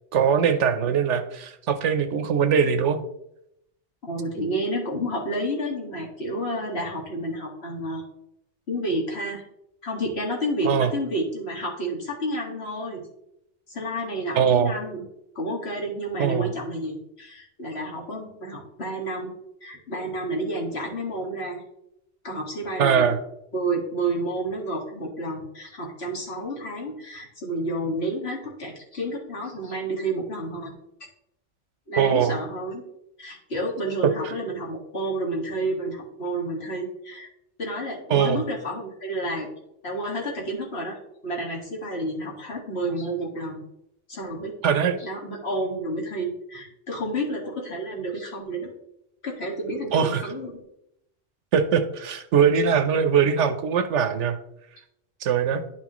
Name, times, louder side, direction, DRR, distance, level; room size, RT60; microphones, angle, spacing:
voice 1, 0.1-3.0 10.6-10.9 14.4-14.7 16.2-16.5 22.8-23.2 32.0-32.3 34.2-34.3 38.1-38.4 44.6-45.0 49.9-50.2 51.5-54.4 55.2-55.6, right 7 dB, 80° right, 9 dB, 1.1 m, -21 dB
voice 2, 4.0-8.0 8.7-9.4 9.8-13.0 13.7-15.0 15.4-19.3 19.6-21.6 22.2-23.1 23.5-30.7 31.9-32.8 33.2-37.3 37.6-39.5 39.8-41.0 41.2-43.6 44.1-44.5 45.0-48.7 49.2-50.5, right 1 dB, 60° left, -2 dB, 2.2 m, -30 dB
10.5 x 5.8 x 3.0 m, 0.79 s
omnidirectional pair, 1.2 m